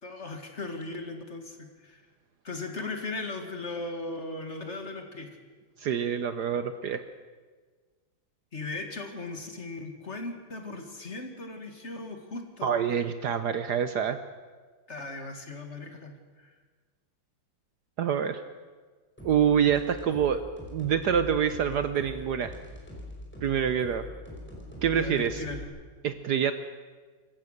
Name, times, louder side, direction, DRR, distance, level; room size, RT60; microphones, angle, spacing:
voice 1, 0.0-2.0 2.4-5.3 8.5-12.7 14.9-16.5 24.9-25.7, left 3 dB, 35° left, 5 dB, 2.2 m, -38 dB
voice 2, 5.8-7.0 12.6-14.2 18.0-18.4 19.2-20.4 20.7-22.6 23.4-24.1 24.8-25.4 26.0-26.5, right 8 dB, 65° right, 10 dB, 1.2 m, -26 dB
sound 1, 19.2-25.6, left 1 dB, 5° left, 5.1 m, -43 dB
26.0 x 15.0 x 6.6 m, 1.4 s
omnidirectional pair, 2.2 m